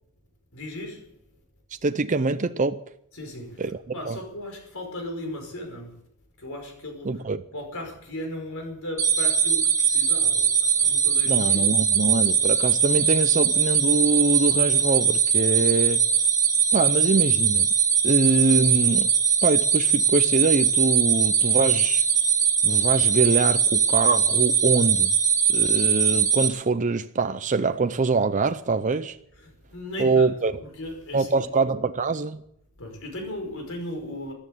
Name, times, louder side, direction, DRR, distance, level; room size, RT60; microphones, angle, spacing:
voice 1, 0.5-1.1 3.1-3.6 3.9-6.0 6.4-7.2 7.5-11.8 29.4-31.5 32.8-34.3, left 1 dB, 65° left, 5.5 m, -36 dB
voice 2, 1.8-2.8 3.6-3.8 4.1-4.2 7.0-7.4 11.3-16.3 16.7-17.7 18.0-19.1 19.4-22.0 22.6-25.2 25.5-29.2 30.0-30.5 31.1-32.4, right 3 dB, 35° right, 0.6 m, -24 dB
sound 1, 9.0-26.5, right 7 dB, 15° right, 2.2 m, -21 dB
14.5 x 12.0 x 8.0 m
head